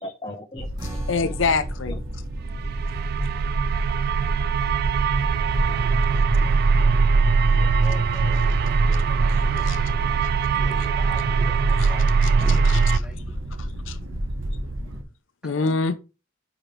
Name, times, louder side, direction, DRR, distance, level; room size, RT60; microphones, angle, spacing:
voice 1, 0.0-1.3 1.9-2.0 5.7-5.8 6.4-6.5 7.6-7.7 8.6-8.7 12.4-12.7, left 1 dB, 25° left, 0.6 m, -38 dB
sound 1, 0.6-15.0, right 1 dB, 90° right, 1.2 m, -32 dB
sound 2, 0.8-7.4, equal, 20° right, 1.4 m, -47 dB
voice 2, 1.1-2.0 9.7-9.8 10.2-10.3 11.8-11.9 12.5-13.0 13.9-14.0 15.4-16.0, left 4 dB, 70° left, 0.6 m, -25 dB
sound 3, 2.3-13.0, right 5 dB, 50° right, 0.3 m, -21 dB
voice 3, 7.8-13.2 15.4-15.7, left 2 dB, 5° right, 1.3 m, -44 dB
5.1 x 4.9 x 4.4 m
head